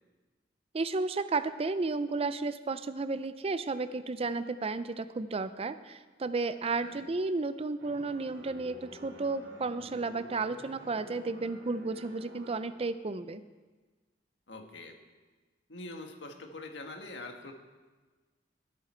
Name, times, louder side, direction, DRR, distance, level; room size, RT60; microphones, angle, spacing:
voice 1, 0.7-13.4, right 3 dB, 35° right, 12 dB, 0.5 m, -33 dB
sound 1, 7.8-12.9, left 1 dB, 80° right, 2.3 m, -51 dB
voice 2, 14.5-15.0 15.7-17.5, left 2 dB, 85° left, 3 dB, 1.6 m, -44 dB
16.5 x 8.9 x 4.4 m, 1.3 s
head